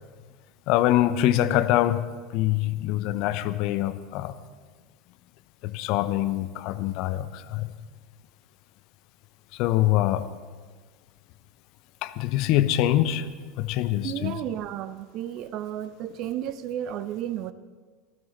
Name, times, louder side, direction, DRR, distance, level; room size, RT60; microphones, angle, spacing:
voice 1, 0.7-2.0 2.3-4.3 5.6-7.7 9.5-10.3 12.0-13.2 13.6-14.4, left 13 dB, 55° left, 12 dB, 0.9 m, -24 dB
voice 2, 14.0-17.5, right 11 dB, 50° right, 14 dB, 0.7 m, -33 dB
18.5 x 14.0 x 4.2 m, 1.5 s
figure-of-eight pair, 80°, 0 cm